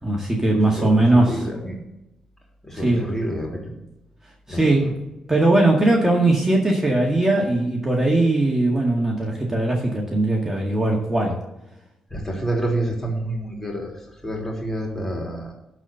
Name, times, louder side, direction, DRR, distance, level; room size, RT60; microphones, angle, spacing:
voice 1, 0.0-1.4 2.7-3.0 4.5-5.0 5.3-11.4, right 2 dB, 20° right, -2 dB, 1.9 m, -19 dB
voice 2, 0.5-1.8 2.6-3.7 4.5-4.9 12.1-15.5, right 1 dB, 15° left, 0 dB, 3.4 m, -28 dB
12.0 x 4.3 x 6.8 m, 0.93 s
supercardioid pair, 60°, 2 cm